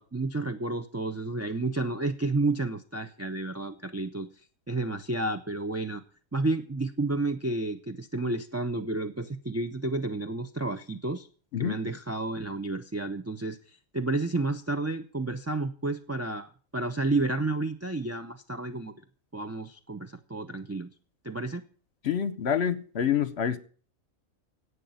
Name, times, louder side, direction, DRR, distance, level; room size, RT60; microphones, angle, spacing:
voice 1, 0.0-4.3 4.7-6.0 6.3-11.3 11.6-13.6 13.9-18.9 19.3-20.9 21.2-21.6, right 2 dB, 20° right, 0.4 m, -31 dB
voice 2, 22.0-23.6, left 8 dB, 55° left, 1.0 m, -27 dB
11.0 x 8.4 x 9.3 m
omnidirectional pair, 1.4 m